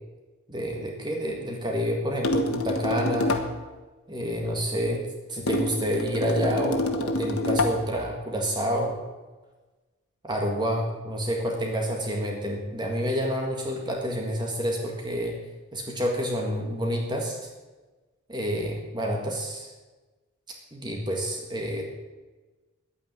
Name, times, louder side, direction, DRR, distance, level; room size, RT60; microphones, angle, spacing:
voice 1, 0.5-3.4 4.1-9.0 10.2-15.4 15.7-17.4 18.3-19.7 20.7-21.8, equal, 20° right, 1 dB, 1.7 m, -28 dB
sound 1, 2.2-3.6 5.5-7.9, left 2 dB, 85° left, 1.4 m, -27 dB
10.5 x 9.4 x 8.8 m, 1.2 s
head